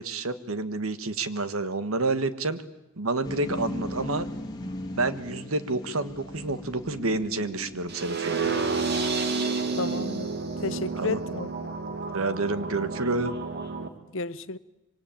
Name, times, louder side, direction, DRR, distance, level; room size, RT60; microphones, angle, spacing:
voice 1, 0.0-2.6 3.0-4.3 5.0-8.5 11.0-11.2 12.1-13.3, right 3 dB, 90° right, 1.6 m, -29 dB
sound 1, 3.2-8.5, left 1 dB, 20° left, 2.8 m, -38 dB
sound 2, 7.9-13.9, right 4 dB, 55° right, 2.3 m, -30 dB
voice 2, 9.8-10.3 10.6-11.5 14.1-14.6, left 3 dB, 65° left, 0.9 m, -32 dB
26.0 x 24.5 x 9.0 m
head